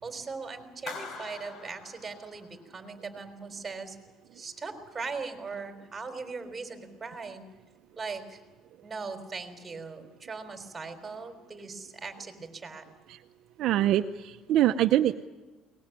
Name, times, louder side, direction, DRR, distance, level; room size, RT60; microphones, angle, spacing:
voice 1, 0.0-4.0 4.3-7.4 8.0-8.4 8.8-12.9, right 4 dB, 20° right, 7 dB, 3.7 m, -39 dB
Clapping, 0.9-2.7, left 4 dB, 50° left, 4.0 m, -43 dB
voice 2, 13.6-15.3, right 12 dB, 60° right, 8 dB, 0.7 m, -24 dB
22.5 x 19.5 x 9.2 m, 1.2 s
cardioid pair, 125°, 0 cm